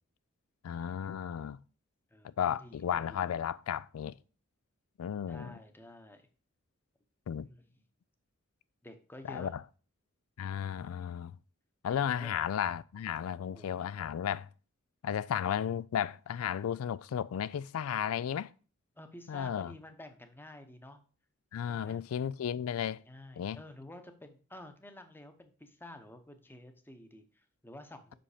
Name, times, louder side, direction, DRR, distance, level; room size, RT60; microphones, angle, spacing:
voice 1, 0.6-1.6 2.2-4.2 5.0-5.5 7.3-7.5 9.2-9.6 10.4-11.4 11.8-14.5 15.0-18.5 19.3-19.7 21.5-23.0 23.4-23.6, left 8 dB, 90° left, 0.3 m, -34 dB
voice 2, 2.1-3.4 5.3-6.2 7.3-7.6 8.8-9.5 11.9-12.3 13.4-13.9 19.0-21.0 21.7-22.0 22.8-28.1, left 1 dB, 10° left, 0.8 m, -51 dB
5.8 x 5.2 x 4.9 m
head